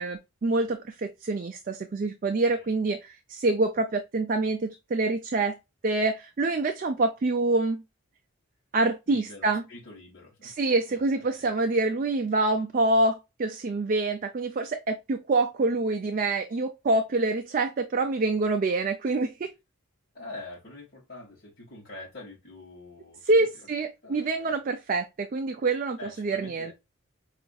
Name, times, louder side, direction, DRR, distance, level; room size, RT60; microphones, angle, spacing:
voice 1, 0.0-5.6 5.8-7.8 8.7-9.6 10.4-19.5 23.2-26.7, right 2 dB, 40° right, 0.4 m, -26 dB
voice 2, 9.1-10.5 10.9-11.5 20.1-23.5 24.0-24.6 26.0-26.7, left 2 dB, 45° left, 1.1 m, -45 dB
5.0 x 2.4 x 2.3 m
head